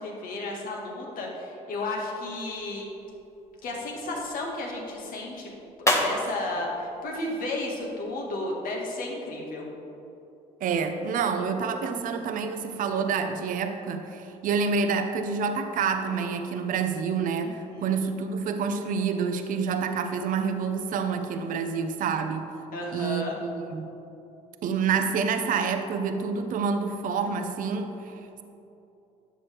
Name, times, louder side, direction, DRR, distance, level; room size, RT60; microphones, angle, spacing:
voice 1, 0.0-2.9 3.6-5.5 6.0-9.7 17.4-18.0 22.7-23.4, left 2 dB, 65° left, -1 dB, 2.0 m, -33 dB
sound 1, 2.2-8.2, left 1 dB, 20° left, 1.4 m, -33 dB
voice 2, 10.6-22.4 22.9-23.9 24.6-28.4, right 5 dB, 60° right, 7 dB, 0.7 m, -28 dB
11.0 x 7.3 x 3.5 m, 2.9 s
supercardioid pair, 75°, 16 cm